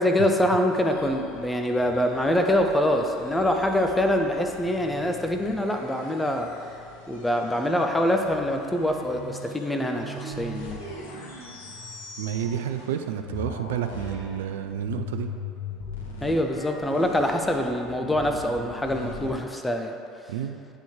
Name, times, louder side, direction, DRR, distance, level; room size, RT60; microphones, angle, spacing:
voice 1, 0.0-6.5 7.1-10.8 16.2-19.9, left 1 dB, 10° left, 3 dB, 0.5 m, -24 dB
sound 1, 0.7-13.0 13.2-19.3, left 2 dB, 70° left, 0.8 m, -40 dB
voice 2, 12.2-15.3 20.3-20.6, right 9 dB, 65° right, 7 dB, 0.3 m, -30 dB
9.0 x 3.7 x 3.6 m, 2.6 s
figure-of-eight pair, 65°, 0 cm